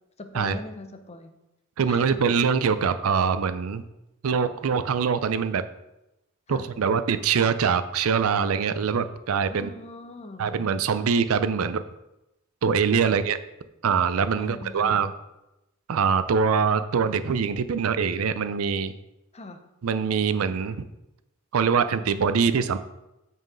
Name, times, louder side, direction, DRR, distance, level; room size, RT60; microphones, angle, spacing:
voice 1, 0.2-1.3 1.8-2.2 6.5-6.7 9.5-10.5 13.0-13.2 14.4-15.0 19.3-19.6, left 2 dB, 30° left, 7 dB, 0.7 m, -41 dB
voice 2, 1.8-3.8 4.2-5.6 6.5-9.7 10.4-11.8 12.6-13.4 13.8-15.1 15.9-18.9 19.8-20.8 21.5-22.8, right 6 dB, 80° right, 12 dB, 0.5 m, -23 dB
6.2 x 4.6 x 6.2 m, 0.93 s
head